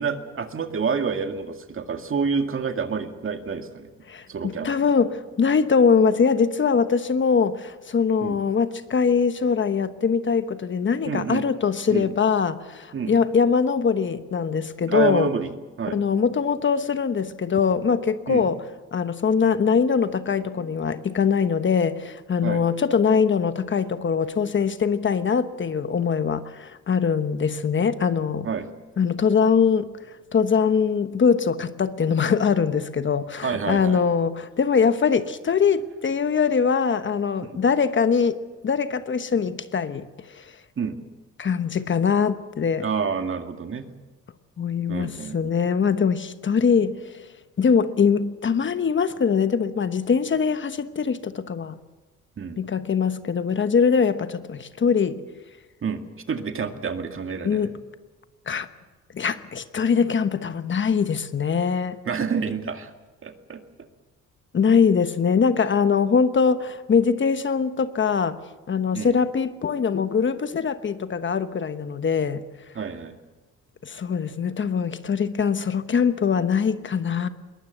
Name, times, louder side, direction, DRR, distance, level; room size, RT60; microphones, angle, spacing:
voice 1, 0.0-3.9 4.3-4.7 8.2-8.4 11.1-11.4 11.9-12.1 12.9-13.1 14.9-15.5 15.8-16.0 18.3-18.4 22.4-22.6 28.4-28.7 33.4-34.0 37.4-37.6 40.8-41.0 42.8-43.9 44.9-45.5 52.4-52.6 55.8-56.0 56.3-57.7 62.1-62.9 63.2-63.6 68.9-69.1 72.8-73.2, right 5 dB, 45° right, 2.1 m, -28 dB
voice 2, 4.1-15.3 15.9-18.6 18.9-28.5 29.0-29.9 30.3-40.1 40.4-40.5 41.4-42.8 44.6-46.9 47.6-51.7 52.6-55.2 57.4-57.8 58.5-58.7 59.1-62.0 64.5-68.4 68.7-72.4 73.8-77.3, left 6 dB, 40° left, 1.1 m, -22 dB
22.0 x 19.5 x 8.0 m
cardioid pair, 90°, 30 cm